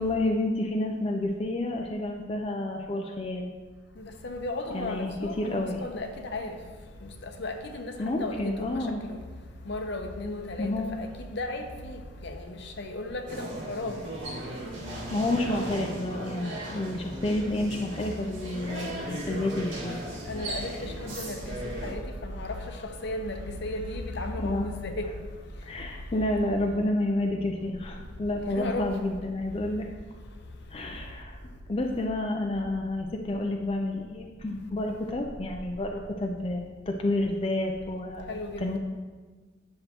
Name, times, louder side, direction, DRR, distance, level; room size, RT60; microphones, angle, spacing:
voice 1, 0.0-3.5 4.7-5.8 8.0-9.0 10.6-10.9 15.1-20.0 24.4-24.7 25.6-29.9 30.7-31.4 31.7-38.8, left 1 dB, 30° left, 0.5 m, -30 dB
voice 2, 4.0-6.6 7.0-7.9 8.2-9.2 9.7-14.0 20.3-21.6 21.8-22.8 23.0-25.1 28.4-28.9 38.3-38.8, left 2 dB, 65° left, 0.8 m, -35 dB
sound 1, 13.3-21.9, right 1 dB, 90° right, 1.9 m, -37 dB
9.8 x 6.5 x 2.9 m
head